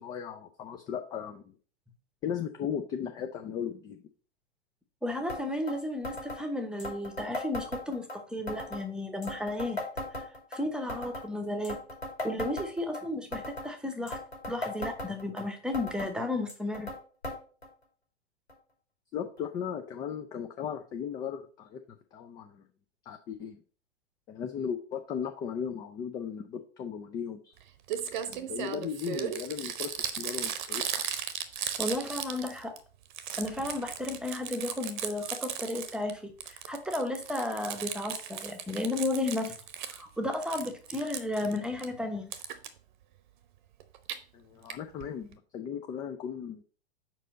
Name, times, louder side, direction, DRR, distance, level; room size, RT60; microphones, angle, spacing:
voice 1, 0.0-1.5 2.2-4.0 19.1-21.8 22.1-22.6 23.1-23.6 24.3-27.6 28.3-31.1 44.3-46.6, left 8 dB, 15° left, 5 dB, 0.3 m, -37 dB
voice 2, 5.0-9.8 10.1-10.2 10.5-11.8 12.2-14.2 14.5-16.9 31.8-32.8 33.4-39.5 39.9-42.3, left 1 dB, 5° right, 7 dB, 1.0 m, -33 dB
sound 1, 5.3-5.4 5.7-5.8 6.0-6.4 6.8-8.2 8.5-8.8 9.2-10.6 10.9-11.3 11.6-13.0 13.3-13.7 14.1-15.4 15.7-16.1 16.5-17.0 17.2-17.4 17.6-17.7 18.5-18.6 19.4-19.5, left 1 dB, 90° left, 2.8 m, -37 dB
Crumpling crinkling, 27.6-27.7 27.9-32.8 33.1-36.1 36.4-40.0 40.3-41.9 42.3-42.7 43.8-44.2 44.7-44.8 45.0-45.1 45.3-45.4, right 9 dB, 45° right, 0.9 m, -36 dB
5.1 x 4.6 x 5.1 m, 0.41 s
figure-of-eight pair, 100°, 32 cm